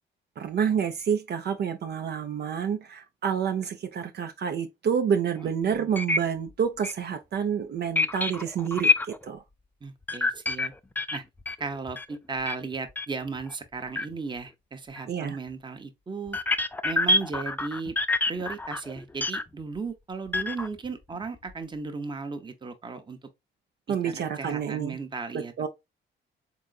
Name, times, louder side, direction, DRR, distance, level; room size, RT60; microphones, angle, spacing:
voice 1, 0.4-9.4 15.1-15.4 23.9-25.0 25.3-25.7, right 7 dB, 55° right, 0.6 m, -28 dB
sound 1, 5.4-5.5 6.0-6.2 6.5-6.6 6.8-6.9 8.0-9.3 10.1-12.1 12.5-12.6 12.9-13.1 13.4-13.5 14.0-14.1 15.0-15.1 16.3-19.4 20.3-20.9 21.2-21.5, left 2 dB, 10° left, 0.4 m, -26 dB
voice 2, 5.4-5.9 9.8-10.7 11.1-11.2 11.6-16.4 16.8-18.0 18.3-23.2 23.9-25.5, right 4 dB, 25° right, 0.8 m, -36 dB
3.8 x 3.7 x 2.3 m
cardioid pair, 90°, 20 cm